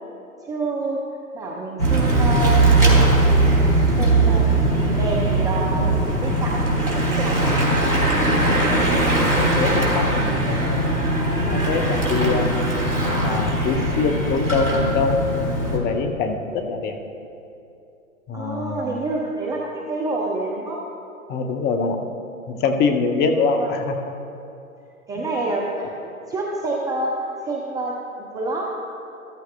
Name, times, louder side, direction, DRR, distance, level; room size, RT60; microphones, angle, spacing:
voice 1, 0.4-1.0 1.3-2.6 3.2-3.7 4.0-4.5 4.7-7.4 18.3-20.8 23.3-23.7 25.1-27.1 27.4-27.9 28.3-28.7, right 2 dB, 10° right, -2 dB, 0.4 m, -28 dB
Bicycle / Mechanisms, 1.8-15.8, right 2 dB, 90° right, 2.8 m, -20 dB
voice 2, 8.2-8.6 9.4-11.0 11.5-12.6 13.2-15.2 15.7-17.0 18.3-19.0 21.3-22.0 22.5-24.0 25.2-25.3, left 4 dB, 25° left, 5 dB, 0.8 m, -24 dB
14.0 x 13.5 x 2.2 m, 2.8 s
figure-of-eight pair, 110°, 42 cm